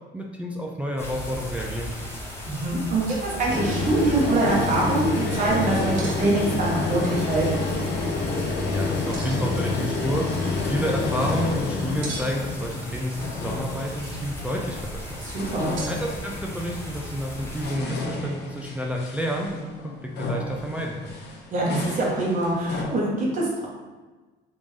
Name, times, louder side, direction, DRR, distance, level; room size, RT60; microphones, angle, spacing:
voice 1, 0.1-2.1 8.7-10.3 10.6-15.3 15.9-21.2, equal, 5° right, -1 dB, 0.3 m, -30 dB
sound 1, 1.0-17.7, equal, 10° left, 0.8 m, -37 dB
voice 2, 2.4-7.5 15.2-15.8 21.5-23.7, right 2 dB, 45° right, -4 dB, 0.9 m, -24 dB
sound 2, 3.1-3.4 3.7-4.2 6.0-6.2 7.2-7.8 9.1-9.6 10.1-10.7 12.0-12.5 13.6-14.4 15.8-16.0, right 3 dB, 75° right, 0.8 m, -41 dB
sound 3, 3.5-15.0 15.3-16.7 17.3-22.8, left 3 dB, 60° left, 0.7 m, -29 dB
3.6 x 2.5 x 3.1 m, 1.3 s
cardioid pair, 110°, 20 cm